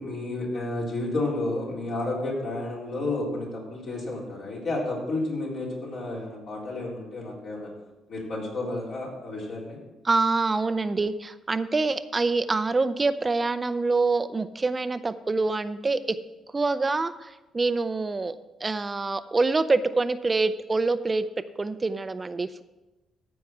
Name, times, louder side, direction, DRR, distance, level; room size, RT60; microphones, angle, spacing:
voice 1, 0.0-7.7 8.1-9.8, left 2 dB, 65° left, -4 dB, 4.0 m, -31 dB
voice 2, 10.0-16.2 16.5-18.4 18.6-21.2 21.6-22.6, right 3 dB, 25° right, 12 dB, 0.5 m, -25 dB
14.0 x 4.7 x 6.0 m, 1.1 s
cardioid pair, 90°, 0 cm